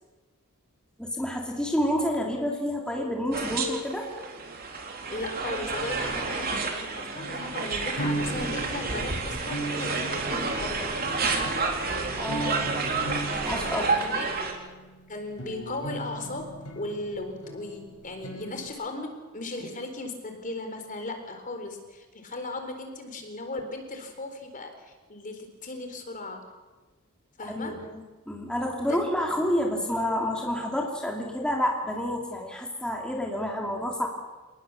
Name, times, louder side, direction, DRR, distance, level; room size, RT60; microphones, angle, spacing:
voice 1, 1.0-4.1 12.2-12.7 13.4-14.1 27.5-34.1, equal, 5° left, -1 dB, 3.0 m, -29 dB
sound 1, 3.3-14.5, right 4 dB, 45° right, 3.6 m, -30 dB
voice 2, 5.1-10.9 11.2-11.5 12.8-12.9 13.7-14.3 15.1-26.4 27.4-27.9 28.9-29.0, left 2 dB, 35° left, 5 dB, 4.0 m, -37 dB
sound 2, 7.1-18.7, right 1 dB, 85° left, 5.4 m, -38 dB
28.5 x 20.0 x 7.1 m, 1.3 s
head